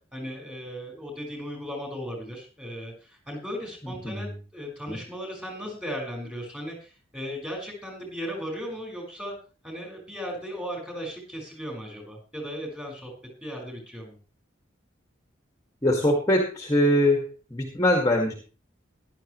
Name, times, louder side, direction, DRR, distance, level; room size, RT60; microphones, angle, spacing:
voice 1, 0.1-4.3 4.5-9.3 9.6-13.1 13.4-14.2, equal, 5° right, 0 dB, 5.4 m, -36 dB
voice 2, 3.8-4.4 4.9-5.0 15.8-18.3, left 1 dB, 15° left, 1 dB, 2.1 m, -23 dB
15.5 x 12.0 x 3.2 m, 0.35 s
head